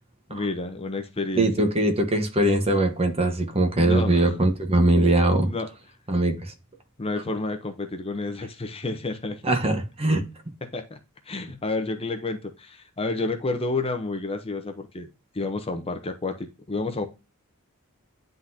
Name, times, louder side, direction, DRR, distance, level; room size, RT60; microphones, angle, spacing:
voice 1, 0.3-1.7 3.7-4.3 5.4-5.7 7.0-9.6 10.7-11.0 11.3-15.1 15.3-17.0, left 3 dB, 25° left, 0.7 m, -30 dB
voice 2, 1.4-5.5 6.1-6.4 9.4-10.2, right 1 dB, 30° right, 1.2 m, -21 dB
10.0 x 3.9 x 2.7 m
head